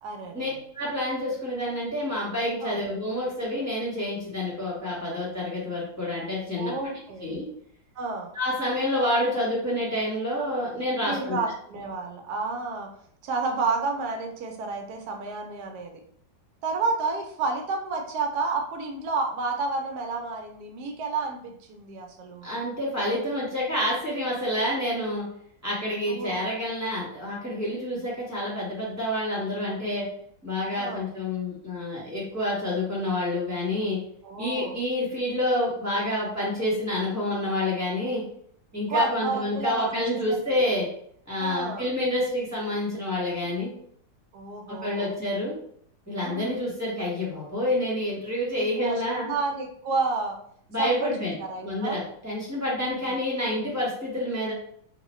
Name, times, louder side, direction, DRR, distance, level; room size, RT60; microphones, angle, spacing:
voice 1, 0.0-0.6 2.6-2.8 6.6-7.3 8.0-8.3 11.0-12.9 13.2-16.0 16.6-22.5 26.1-26.5 30.8-31.0 34.2-34.8 38.9-40.7 41.4-41.9 44.3-45.1 46.2-46.6 48.6-50.4 50.8-52.0 52.8-53.1, right 3 dB, 70° right, 3 dB, 1.0 m, -31 dB
voice 2, 0.7-6.7 7.2-7.5 8.3-11.4 22.4-25.2 25.6-30.0 30.4-34.0 34.4-38.2 38.7-40.9 41.3-43.7 44.7-45.6 46.1-49.3 50.7-51.3 51.6-54.5, left 1 dB, 10° right, -6 dB, 0.9 m, -28 dB
3.1 x 2.7 x 3.0 m, 0.64 s
omnidirectional pair, 2.1 m